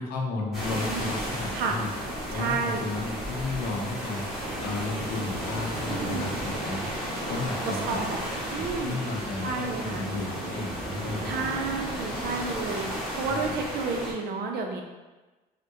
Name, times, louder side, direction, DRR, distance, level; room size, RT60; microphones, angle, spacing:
voice 1, 0.0-1.9 2.3-4.3 4.6-6.9 7.3-8.1 8.5-11.4 13.2-13.6, left 3 dB, 85° left, 0 dB, 0.6 m, -33 dB
sound 1, 0.5-14.1, equal, ahead, 1.2 m, -33 dB
voice 2, 2.3-2.8 5.9-6.4 7.6-8.2 8.5-9.0 9.4-10.0 11.2-14.8, right 4 dB, 70° right, 2 dB, 0.5 m, -31 dB
3.6 x 2.1 x 2.7 m, 1.2 s
cardioid pair, 110°, 17 cm